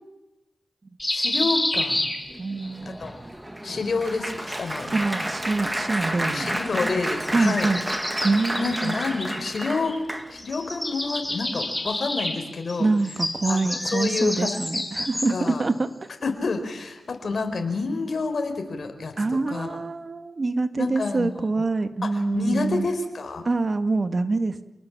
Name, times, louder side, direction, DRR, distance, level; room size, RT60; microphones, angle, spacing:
sound 1, 1.0-2.7 4.1-5.2 7.1-10.1 10.4-15.6, left 1 dB, 10° left, 4.8 m, -30 dB
voice 1, 1.1-2.0 3.0-3.2 3.6-4.9 6.3-7.7 8.6-9.9 10.3-12.9 13.4-14.6 15.3-15.6 16.2-19.1 19.5-19.8 20.8-21.3 22.0-23.4, left 4 dB, 60° left, 6 dB, 4.7 m, -28 dB
Applause, 2.3-10.6 11.2-11.5 11.8-11.9, right 1 dB, 15° right, 2.3 m, -31 dB
voice 2, 2.4-3.0 4.9-6.6 7.3-7.8 8.2-9.0 12.8-15.9 19.2-22.9 23.4-24.6, right 3 dB, 45° right, 10 dB, 1.8 m, -25 dB
28.0 x 19.5 x 7.4 m, 0.99 s
cardioid pair, 45°, 0 cm